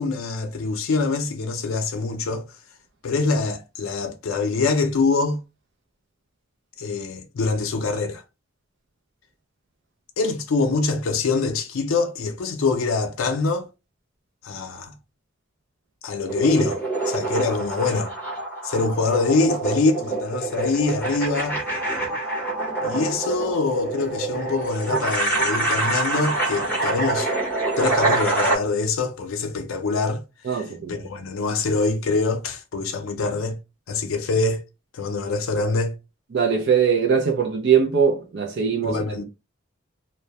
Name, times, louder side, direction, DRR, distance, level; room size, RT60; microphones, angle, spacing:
voice 1, 0.0-2.4 3.0-5.4 6.8-8.2 10.2-13.7 14.4-14.9 16.0-18.1 18.6-21.6 22.8-27.3 27.8-33.6 33.9-34.6 34.9-35.9 38.8-39.2, left 3 dB, 75° left, 0.4 m, -24 dB
sound 1, 16.3-28.6, right 2 dB, 10° left, 0.7 m, -26 dB
voice 2, 30.5-31.1 36.3-39.0, right 6 dB, 55° right, 0.4 m, -21 dB
2.2 x 2.0 x 2.7 m
head